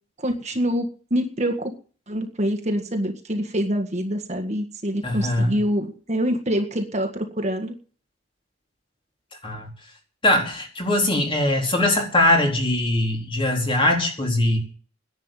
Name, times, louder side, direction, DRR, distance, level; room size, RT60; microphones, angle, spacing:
voice 1, 0.2-1.7 2.1-7.7, equal, 35° right, 5 dB, 1.8 m, -25 dB
voice 2, 5.0-5.6 9.4-9.7 10.2-14.6, left 1 dB, 25° left, 1 dB, 4.0 m, -21 dB
11.0 x 10.0 x 9.0 m, 0.41 s
head